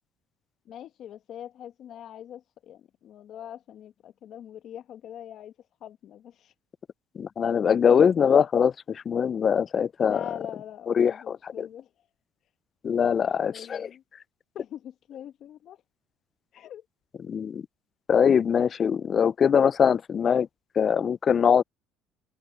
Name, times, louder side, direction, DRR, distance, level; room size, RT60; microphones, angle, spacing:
voice 1, 0.6-5.5 5.8-6.5 10.0-11.9 13.0-14.0 14.5-15.8 16.5-16.8, left 10 dB, 55° left, 1.5 m, -43 dB
voice 2, 7.2-10.2 10.9-11.7 12.8-13.9 17.3-17.7 18.1-20.5 20.8-21.6, left 7 dB, 40° left, 0.3 m, -22 dB
supercardioid pair, 100°, 0 cm